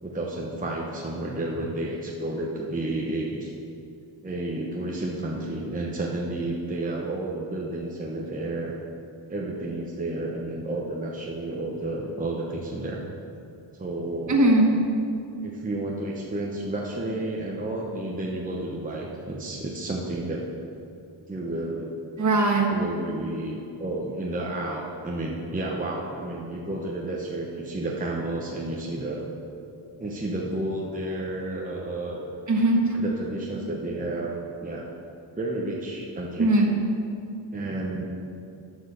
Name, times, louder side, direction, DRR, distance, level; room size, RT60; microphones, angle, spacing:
voice 1, 0.0-3.5 4.2-8.8 9.3-13.0 13.8-14.4 15.4-20.4 21.3-21.9 22.7-29.2 30.0-32.3 32.9-34.3 34.6-34.9 35.4-36.5 37.5-38.0, right 2 dB, 15° right, -3 dB, 1.0 m, -31 dB
voice 2, 14.3-14.7 22.2-22.7 32.5-32.9 36.4-36.7, right 2 dB, 40° right, 1 dB, 1.4 m, -19 dB
12.0 x 4.9 x 6.7 m, 2.6 s
wide cardioid pair, 130°, 46 cm